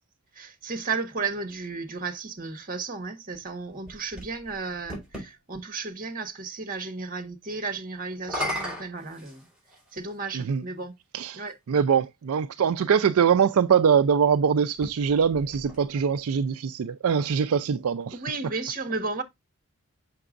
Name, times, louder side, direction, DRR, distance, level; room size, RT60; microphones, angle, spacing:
voice 1, 0.3-9.4 9.9-10.9 11.3-11.5 18.1-19.2, right 4 dB, 40° right, 1.4 m, -33 dB
sound 1, 3.5-5.3 8.1-9.9 10.8-10.9 14.6-16.2, equal, 5° right, 4.4 m, -36 dB
voice 2, 11.1-18.2, right 7 dB, 75° right, 0.4 m, -23 dB
6.8 x 5.9 x 2.5 m
head